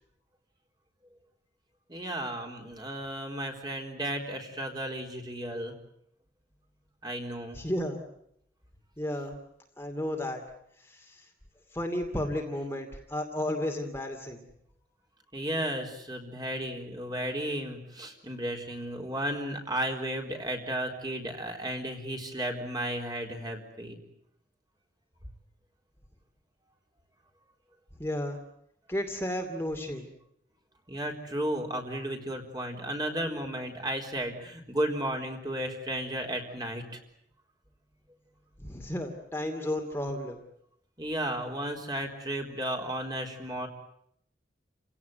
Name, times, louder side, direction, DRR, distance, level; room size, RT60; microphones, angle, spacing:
voice 1, 1.9-5.7 7.0-7.6 15.3-24.0 30.9-37.0 41.0-43.7, right 1 dB, 20° right, 3 dB, 4.1 m, -34 dB
voice 2, 7.5-8.0 9.0-9.3 9.8-10.4 10.8-11.3 11.7-14.5 28.0-28.4 28.9-30.1 38.6-40.4, left 1 dB, 15° left, 3 dB, 2.5 m, -33 dB
30.0 x 17.0 x 9.4 m, 0.73 s
head